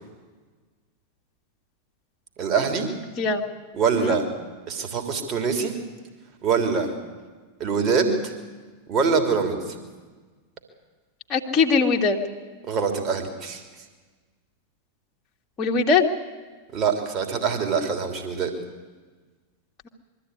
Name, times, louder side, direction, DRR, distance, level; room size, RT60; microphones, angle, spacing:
voice 1, 2.4-2.9 3.7-4.2 4.7-5.7 6.4-6.9 7.6-8.3 8.9-9.8 12.7-13.6 16.7-18.5, right 5 dB, 30° right, 4 dB, 3.1 m, -24 dB
voice 2, 11.3-12.2 15.6-16.1, left 4 dB, 25° left, 1 dB, 2.0 m, -21 dB
22.5 x 13.5 x 9.7 m, 1.4 s
figure-of-eight pair, 90°, 0 cm